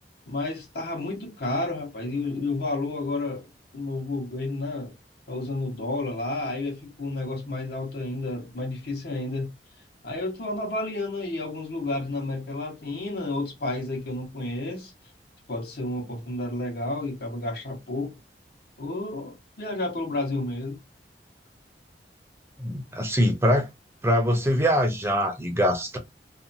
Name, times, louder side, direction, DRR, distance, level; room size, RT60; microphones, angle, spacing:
voice 1, 0.3-3.5 3.7-4.9 5.3-9.5 10.0-14.9 15.5-18.2 18.8-20.8, left 2 dB, 60° left, 1.0 m, -31 dB
voice 2, 22.6-23.7 24.0-26.0, equal, 15° right, 0.5 m, -23 dB
2.7 x 2.2 x 2.6 m
head